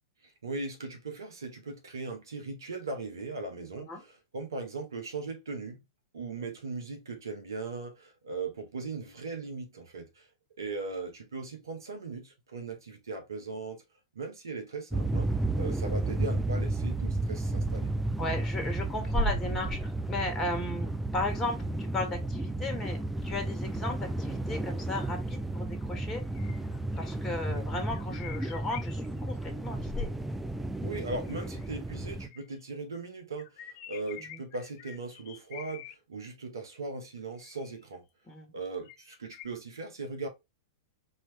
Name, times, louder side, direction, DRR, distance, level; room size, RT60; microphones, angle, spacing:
voice 1, 0.2-5.8 6.1-10.3 10.6-13.8 14.1-15.3 15.5-17.9 27.5-27.7 30.8-38.0 38.5-40.3, right 3 dB, 80° right, 1.6 m, -39 dB
sound 1, 14.9-32.3, right 2 dB, 5° right, 0.5 m, -32 dB
voice 2, 18.2-26.2 27.0-30.1 34.3-34.4 38.3-38.5, left 2 dB, 20° left, 1.6 m, -36 dB
sound 2, 26.1-27.2 27.9-29.4 31.2-32.6 33.4-36.0 37.4-38.0 38.9-39.5, left 12 dB, 45° left, 0.6 m, -48 dB
4.2 x 3.0 x 3.2 m
hypercardioid pair, 105°, 2 cm